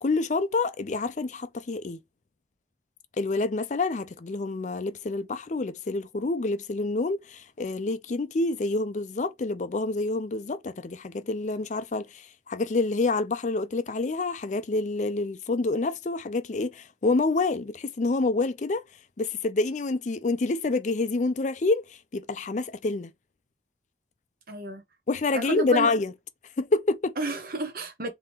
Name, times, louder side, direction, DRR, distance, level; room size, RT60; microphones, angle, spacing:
voice 1, 0.0-2.0 3.2-18.8 19.2-23.1 25.1-26.1 26.6-27.2, left 3 dB, 40° left, 0.4 m, -27 dB
voice 2, 24.5-24.8 25.3-25.9 27.2-28.1, right 2 dB, 50° right, 1.0 m, -31 dB
3.7 x 2.9 x 4.4 m
head